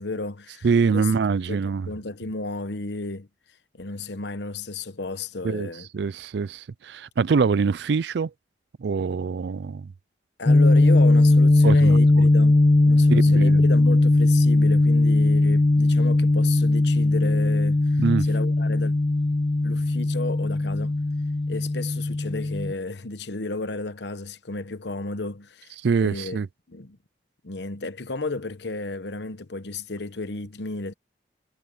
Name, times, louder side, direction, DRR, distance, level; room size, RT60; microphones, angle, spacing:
voice 1, 0.0-1.1 1.5-3.3 3.7-5.9 10.4-18.9 19.6-21.0 21.5-25.8 26.0-26.4 26.7-27.0 27.4-30.9, left 3 dB, 65° left, 1.0 m, -33 dB
voice 2, 0.6-1.9 5.4-8.3 8.8-9.9 11.6-12.3 13.1-13.7 18.0-18.3 25.8-26.5, right 5 dB, 65° right, 0.4 m, -24 dB
sound 1, 10.5-22.7, left 2 dB, 25° left, 0.3 m, -19 dB
head